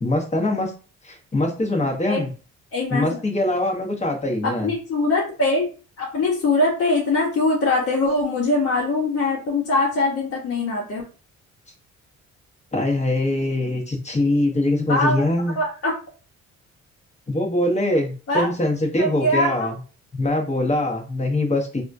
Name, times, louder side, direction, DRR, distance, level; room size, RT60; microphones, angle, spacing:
voice 1, 0.0-0.7 1.0-2.3 2.9-4.7 12.7-15.6 17.3-19.8 20.1-21.8, left 1 dB, 20° left, 1 dB, 1.0 m, -23 dB
voice 2, 2.7-3.2 4.4-5.7 6.0-11.0 14.9-15.2 15.6-15.9 18.3-18.5 19.0-19.7, left 2 dB, 50° left, -2 dB, 1.0 m, -22 dB
3.5 x 2.3 x 2.6 m, 0.36 s
cardioid pair, 90°, 30 cm